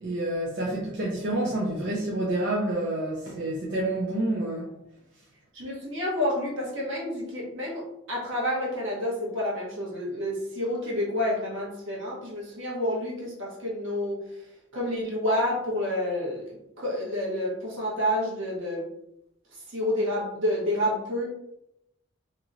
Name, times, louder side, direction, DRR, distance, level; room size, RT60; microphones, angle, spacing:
voice 1, 0.0-4.7, right 1 dB, 60° right, -5 dB, 0.6 m, -28 dB
voice 2, 5.5-14.2 14.7-18.9 19.5-21.3, left 1 dB, 80° right, -4 dB, 1.2 m, -29 dB
2.9 x 2.9 x 2.5 m, 0.83 s
head